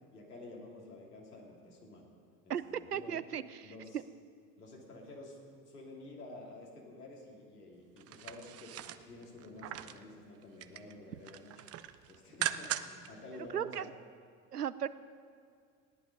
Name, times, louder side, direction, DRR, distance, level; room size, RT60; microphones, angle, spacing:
voice 1, 0.1-2.1 2.4-3.2 3.6-4.0 4.6-13.9, left 2 dB, 80° left, -2 dB, 3.1 m, -51 dB
voice 2, 2.9-4.0 13.5-13.9 14.5-14.9, right 9 dB, 90° right, 15 dB, 0.6 m, -36 dB
sound 1, 8.0-10.0 10.4-10.9 11.2-13.1 13.5-13.6, right 12 dB, 30° right, 0.6 m, -40 dB
17.0 x 11.0 x 5.3 m, 2.2 s
figure-of-eight pair, 70°, 46 cm